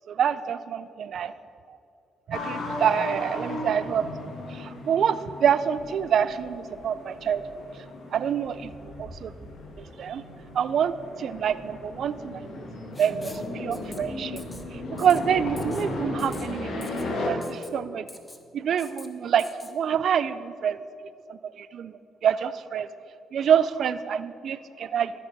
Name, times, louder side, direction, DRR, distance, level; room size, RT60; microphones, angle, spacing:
voice 1, 0.1-1.3 1.7-1.8 2.3-7.4 8.1-9.5 9.8-10.2 10.5-10.9 11.2-12.6 13.0-14.4 14.7-16.8 17.3-18.1 18.5-20.8 21.3-22.9 23.3-25.1, right 8 dB, 65° right, 15 dB, 0.4 m, -26 dB
sound 1, 2.3-17.3, left 2 dB, 70° left, 1.6 m, -36 dB
Writing, 12.9-13.5 13.7-14.0 14.4-14.6 15.0-15.2 15.6-15.9 16.2-16.5 16.8-17.1 17.4-17.7 18.1-18.4 18.8-19.1 19.4-19.7, left 2 dB, 20° left, 0.9 m, -46 dB
13.5 x 5.9 x 4.0 m, 2.5 s
supercardioid pair, 60°, 0 cm